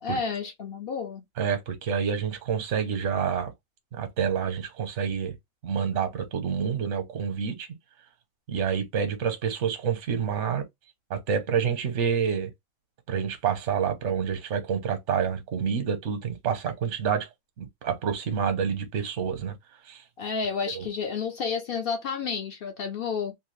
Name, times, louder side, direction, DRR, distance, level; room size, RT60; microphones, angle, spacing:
voice 1, 0.0-1.2 20.2-23.3, left 5 dB, 60° left, 0.6 m, -31 dB
voice 2, 1.4-3.5 3.9-5.3 5.6-7.7 8.5-10.6 11.1-12.5 13.1-17.3 17.6-19.5 19.8-20.0 20.7-20.8, right 7 dB, 65° right, 1.1 m, -28 dB
2.7 x 2.3 x 3.1 m
omnidirectional pair, 1.4 m